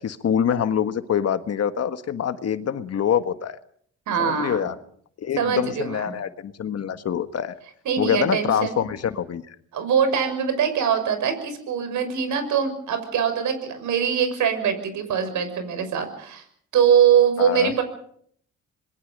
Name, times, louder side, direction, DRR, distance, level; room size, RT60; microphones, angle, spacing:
voice 1, 0.0-3.6 4.2-4.7 5.2-7.5 8.0-9.5 17.4-17.7, left 8 dB, 55° left, 10 dB, 1.6 m, -25 dB
voice 2, 4.1-4.6 5.4-6.1 7.8-8.8 9.7-16.4 16.7-17.8, right 7 dB, 75° right, 9 dB, 6.0 m, -22 dB
27.0 x 21.5 x 5.4 m, 0.63 s
cardioid pair, 90°, 30 cm